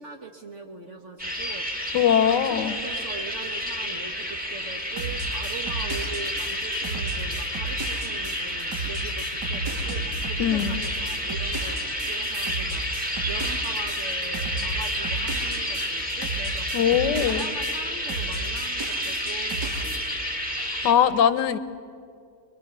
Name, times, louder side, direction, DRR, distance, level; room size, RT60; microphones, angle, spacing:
voice 1, 0.0-20.3, right 3 dB, 50° right, 4 dB, 1.3 m, -41 dB
sound 1, 1.2-20.9, equal, 5° right, 1.7 m, -30 dB
voice 2, 1.9-2.8 10.4-10.8 16.7-17.5 20.6-21.6, left 9 dB, 85° left, 12 dB, 1.5 m, -21 dB
sound 2, 5.0-17.8 18.1-20.0, right 3 dB, 80° right, 2.8 m, -33 dB
24.5 x 21.5 x 6.7 m, 2.4 s
omnidirectional pair, 1.8 m